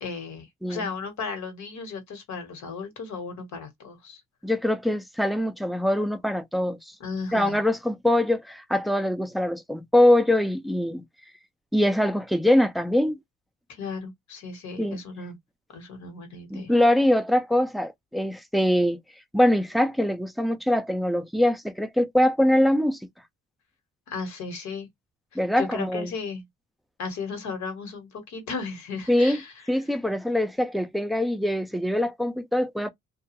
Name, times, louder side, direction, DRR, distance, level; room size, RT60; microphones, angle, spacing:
voice 1, 0.0-4.2 7.0-7.6 13.7-15.4 15.7-16.7 24.1-24.9 25.3-26.4 27.0-29.5, left 4 dB, 70° left, 1.1 m, -35 dB
voice 2, 4.4-6.8 7.3-11.0 11.7-13.2 14.8-15.0 16.5-19.0 19.3-23.0 25.4-26.1 29.1-29.4 29.7-32.9, left 1 dB, ahead, 0.4 m, -23 dB
2.3 x 2.3 x 2.7 m
cardioid pair, 90°, 30 cm